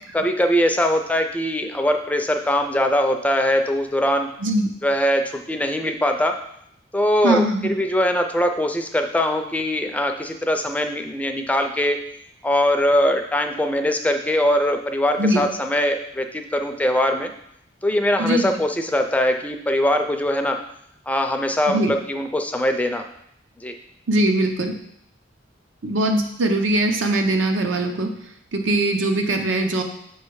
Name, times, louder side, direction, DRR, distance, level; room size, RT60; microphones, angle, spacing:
voice 1, 0.1-4.3 4.8-6.4 6.9-12.0 12.4-17.3 17.8-20.6 21.1-23.0 23.6-23.7, left 1 dB, 10° left, 5 dB, 0.4 m, -21 dB
voice 2, 7.2-7.7 15.2-15.4 18.2-18.5 21.7-21.9 24.1-24.7 25.8-28.1 28.5-29.8, right 1 dB, 85° right, 4 dB, 0.8 m, -21 dB
6.9 x 3.2 x 4.7 m, 0.73 s
head